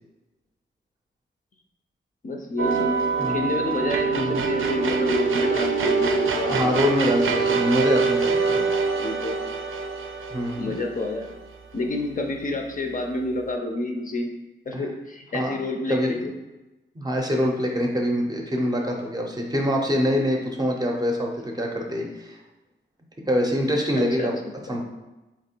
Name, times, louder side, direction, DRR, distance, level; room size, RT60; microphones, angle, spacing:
voice 1, 2.2-6.7 9.0-9.4 10.6-11.3 11.7-14.3 14.7-16.3 23.9-24.8, left 2 dB, 40° left, 2 dB, 0.5 m, -29 dB
sound 1, 2.6-11.8, right 5 dB, 85° right, 0.5 m, -25 dB
voice 2, 6.5-8.6 10.3-10.7 14.7-14.8 15.3-15.6 15.9-16.2 16.9-22.4 23.3-24.3 24.7-24.8, equal, 20° right, 0 dB, 0.5 m, -25 dB
4.1 x 3.0 x 4.3 m, 1.1 s
wide cardioid pair, 180°, 20 cm